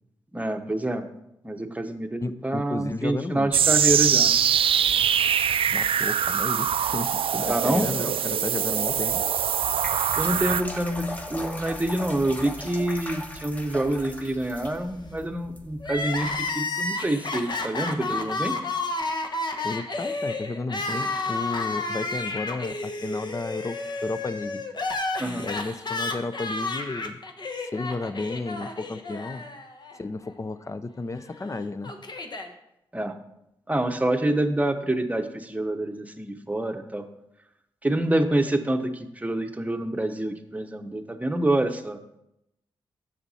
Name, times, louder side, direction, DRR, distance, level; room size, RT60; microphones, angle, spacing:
voice 1, 0.3-1.1 1.4-4.3 7.5-7.9 10.2-18.5 25.2-25.5 32.9-33.1 33.7-37.0 37.8-42.0, right 1 dB, 15° right, 6 dB, 0.9 m, -27 dB
voice 2, 2.2-3.5 5.7-9.2 19.6-24.6 25.4-27.2 27.6-29.4 30.0-31.9, left 3 dB, 30° left, 13 dB, 0.6 m, -33 dB
sound 1, 3.5-10.6, right 8 dB, 65° right, 0.4 m, -23 dB
sound 2, 9.5-16.5, equal, 15° left, 1.3 m, -39 dB
Crying sobbing, 15.8-30.0 30.3-30.4 31.3-32.5, left 3 dB, 45° left, 1.0 m, -31 dB
6.8 x 6.4 x 4.2 m, 0.84 s
supercardioid pair, 45°, 10 cm